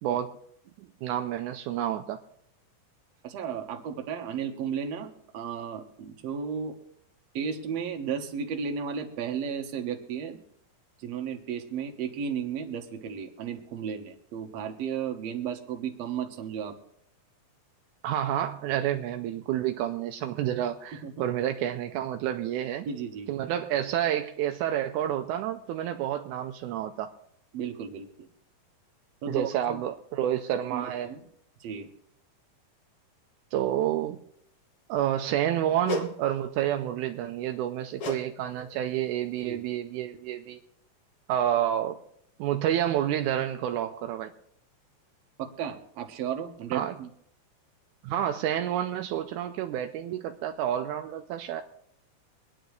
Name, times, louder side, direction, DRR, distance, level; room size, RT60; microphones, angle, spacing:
voice 1, 0.0-0.4 0.8-2.2 18.0-22.9 23.3-27.1 29.3-31.1 33.5-34.2 34.9-40.6 41.3-42.0 42.4-44.3 46.7-47.0 48.0-51.6, right 11 dB, 85° right, 5 dB, 1.7 m, -29 dB
voice 2, 3.2-6.8 7.3-10.4 11.0-16.8 21.0-21.1 22.9-23.3 27.5-28.3 29.2-29.8 30.7-31.2 31.6-31.9 39.5-39.6 45.4-47.1, right 7 dB, 60° right, 4 dB, 1.9 m, -34 dB
sound 1, 35.8-36.2 38.0-38.3 38.5-38.8 39.4-39.5, left 1 dB, 55° left, 1.8 m, -32 dB
24.5 x 10.0 x 3.2 m, 0.71 s
omnidirectional pair, 4.1 m